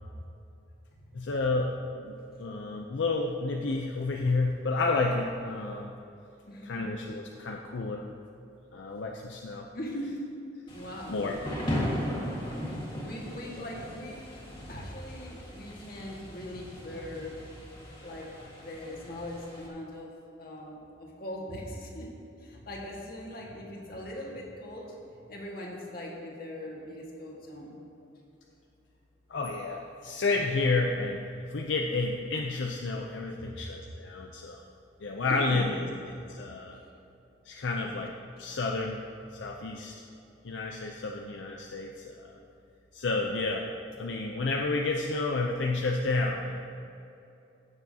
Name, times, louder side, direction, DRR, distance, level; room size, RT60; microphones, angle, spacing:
voice 1, 1.1-5.9 6.6-8.1 8.7-9.7 11.1-11.4 11.7-12.0 29.3-34.6 35.0-35.7 36.3-36.8 37.5-39.0 39.3-39.9 40.4-42.4 42.9-43.7 44.0-46.7, left 3 dB, 75° left, 1 dB, 0.6 m, -30 dB
voice 2, 6.5-6.9 9.7-10.2 10.7-11.2 13.0-14.2 14.7-17.4 18.0-18.3 18.6-20.1 20.4-22.1 22.4-24.9 25.3-27.7 33.4-33.6 35.2-35.8, left 1 dB, 55° left, -2 dB, 1.7 m, -40 dB
Thunder / Rain, 10.7-19.7, equal, 25° left, 1.8 m, -37 dB
16.0 x 6.9 x 2.8 m, 2.7 s
head